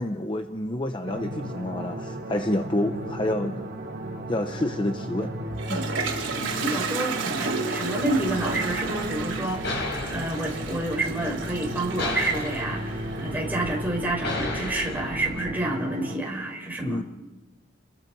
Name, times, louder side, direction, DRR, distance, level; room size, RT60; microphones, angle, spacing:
voice 1, 0.0-3.7 4.3-5.3 5.7-6.0 16.8-17.0, left 1 dB, 25° left, 6 dB, 0.8 m, -28 dB
sound 1, 1.0-16.2, right 1 dB, 50° right, 3.5 m, -35 dB
Toilet flush, 5.2-14.1, right 4 dB, 75° right, 3.5 m, -33 dB
voice 2, 6.4-9.8 10.1-17.0, right 1 dB, 10° right, -1 dB, 4.9 m, -29 dB
sound 2, 8.1-15.4, left 2 dB, 60° left, 5.7 m, -36 dB
29.5 x 22.5 x 4.7 m, 1.1 s
head